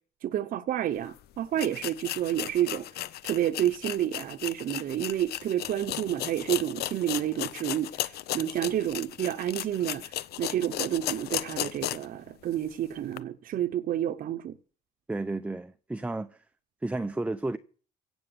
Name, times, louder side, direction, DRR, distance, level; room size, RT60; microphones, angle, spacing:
voice 1, 0.2-2.9 3.2-14.6, right 11 dB, 55° right, 0.8 m, -30 dB
sound 1, 1.0-1.1 1.5-12.2 12.5-12.6 13.1-13.2, left 13 dB, 70° left, 0.8 m, -35 dB
voice 2, 15.1-16.4 16.8-17.6, right 2 dB, 10° right, 0.6 m, -32 dB
16.5 x 7.1 x 7.9 m
cardioid pair, 110°, 17 cm